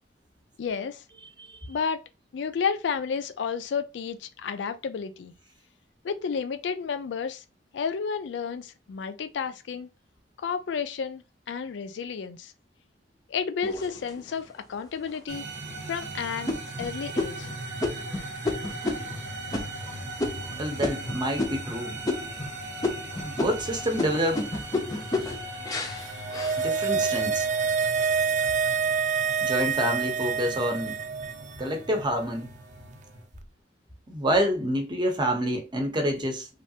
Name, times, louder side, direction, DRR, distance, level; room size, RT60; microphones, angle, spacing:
voice 1, 0.6-1.0 1.7-2.0 2.3-5.3 6.0-7.4 7.7-9.9 10.4-12.5 13.3-15.5 15.9-17.5, left 6 dB, 80° left, 0.4 m, -31 dB
sound 1, 13.6-14.5 15.1-15.2 15.7-16.0 16.5-21.8 22.0-22.5 22.8-27.1 27.6-28.2, left 2 dB, 20° left, 0.5 m, -32 dB
sound 2, 15.3-33.2, right 2 dB, 70° right, 0.8 m, -39 dB
voice 2, 20.6-22.0 23.2-24.5 26.6-27.5 29.4-30.9 31.6-32.5 34.1-36.5, equal, 25° right, 0.8 m, -27 dB
sound 3, 26.1-31.6 31.8-31.9, right 6 dB, 40° right, 0.3 m, -27 dB
3.3 x 2.4 x 2.7 m
head